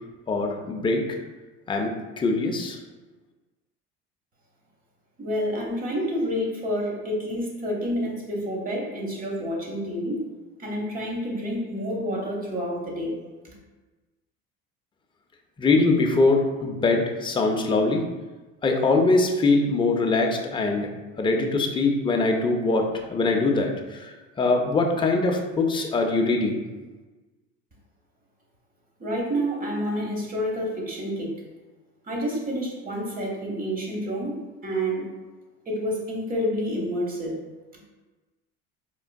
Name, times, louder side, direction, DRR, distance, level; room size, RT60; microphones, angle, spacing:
voice 1, 0.3-1.2 1.7-2.8 15.6-18.0 18.6-20.9 21.2-24.1 24.4-26.6, left 3 dB, 15° left, 2 dB, 0.5 m, -22 dB
voice 2, 5.2-10.3 10.6-13.1 13.4-13.6 29.0-31.3 32.1-35.1 35.7-37.3, equal, 30° right, -1 dB, 1.0 m, -29 dB
4.4 x 2.4 x 2.2 m, 1.2 s
supercardioid pair, 105°, 29 cm